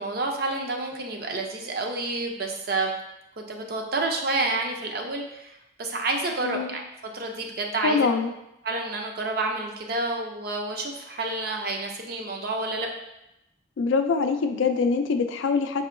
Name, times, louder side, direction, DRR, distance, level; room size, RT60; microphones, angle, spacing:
voice 1, 0.0-2.9 3.4-6.8 7.1-8.1 8.6-12.9, right 2 dB, 50° right, 2 dB, 0.5 m, -29 dB
voice 2, 6.4-6.8 7.8-8.3 13.8-15.9, left 4 dB, 85° left, 7 dB, 0.4 m, -24 dB
5.4 x 2.7 x 2.5 m, 0.86 s
head